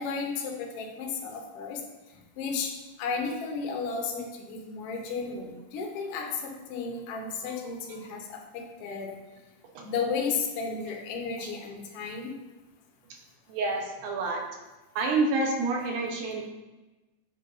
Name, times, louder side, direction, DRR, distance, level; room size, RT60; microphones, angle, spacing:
voice 1, 0.0-1.8 2.4-2.7 3.0-9.1 9.8-12.3, left 5 dB, 70° left, -1 dB, 1.4 m, -33 dB
voice 2, 13.5-14.5 15.0-16.5, right 3 dB, 75° right, 1 dB, 2.2 m, -28 dB
8.6 x 5.5 x 2.6 m, 1.1 s
omnidirectional pair, 3.9 m